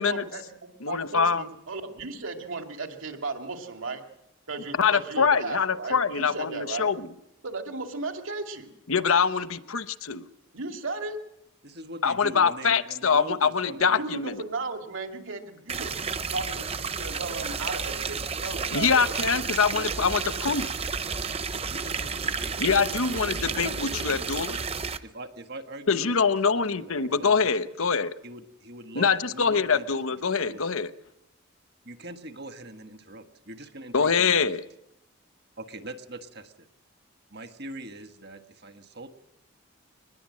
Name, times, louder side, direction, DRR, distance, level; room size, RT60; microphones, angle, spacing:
voice 1, 0.0-4.0 4.5-6.9 7.4-8.7 10.5-11.2 13.8-19.4 19.7-20.5, right 3 dB, 70° right, 5 dB, 2.5 m, -36 dB
voice 2, 0.8-1.4 4.7-7.1 8.9-10.3 12.0-14.4 18.7-20.7 22.6-24.6 25.9-28.1 28.9-30.9 33.9-34.6, left 5 dB, 80° left, 13 dB, 1.0 m, -24 dB
voice 3, 11.6-14.0 21.5-24.2 25.0-27.6 28.2-29.8 30.3-30.6 31.8-34.6 35.6-36.7 37.3-39.1, right 1 dB, 50° right, 8 dB, 1.5 m, -43 dB
sound 1, 15.7-25.0, right 5 dB, 30° right, 0.8 m, -31 dB
23.0 x 20.5 x 7.7 m, 0.86 s
head